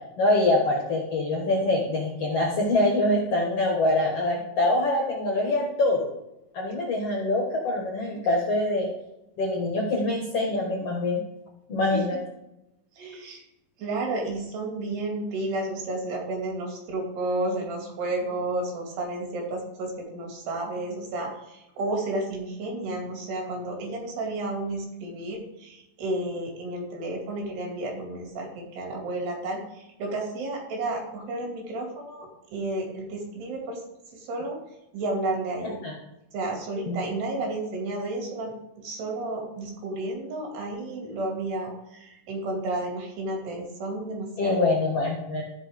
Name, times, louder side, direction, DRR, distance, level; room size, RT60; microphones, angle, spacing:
voice 1, 0.2-6.1 6.5-8.9 9.4-11.2 11.7-12.2 35.6-35.9 36.9-37.0 44.4-45.4, left 2 dB, 55° left, -1 dB, 1.7 m, -24 dB
voice 2, 11.9-12.2 13.0-13.4 13.8-33.8 34.1-34.6 34.9-35.8 36.3-44.6, right 2 dB, 70° right, 0 dB, 4.3 m, -32 dB
14.5 x 5.7 x 3.6 m, 0.89 s
omnidirectional pair, 4.9 m